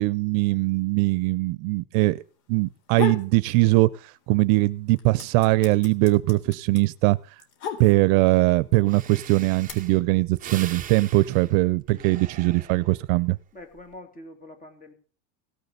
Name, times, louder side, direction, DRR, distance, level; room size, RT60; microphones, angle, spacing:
voice 1, 0.0-2.2 2.5-3.9 4.3-7.2 7.8-13.4, right 21 dB, 70° right, 18 dB, 0.7 m, -21 dB
sound 1, 2.7-3.3 3.7-4.4 4.7-8.3 9.1-9.7, left 8 dB, 85° left, 3.6 m, -34 dB
Breathing, 8.5-8.6 8.9-13.1 13.6-14.0, right 9 dB, 20° right, 0.8 m, -42 dB
voice 2, 13.5-14.9, left 2 dB, 20° left, 7 dB, 2.6 m, -45 dB
17.0 x 6.7 x 6.8 m, 0.41 s
cardioid pair, 160°, 42 cm